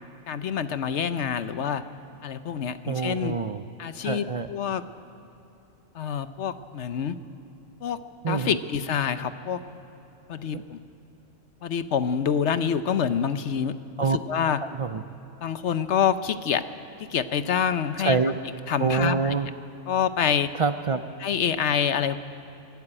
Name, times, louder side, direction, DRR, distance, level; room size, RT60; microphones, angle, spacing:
voice 1, 0.3-1.8 2.2-3.3 3.8-4.8 5.9-7.2 7.8-8.0 8.3-9.6 10.3-10.8 11.6-14.6 15.4-16.6 17.1-18.2 18.7-19.3 19.9-20.5 21.2-22.2, left 8 dB, 60° left, 12 dB, 1.0 m, -26 dB
voice 2, 2.9-3.6 4.0-4.5 8.2-8.6 10.5-10.6 14.0-14.2 14.6-15.0 18.0-18.4 18.8-19.5 20.6-21.0, right 4 dB, 60° right, 10 dB, 0.3 m, -25 dB
24.5 x 12.0 x 9.9 m, 2.9 s
omnidirectional pair, 1.4 m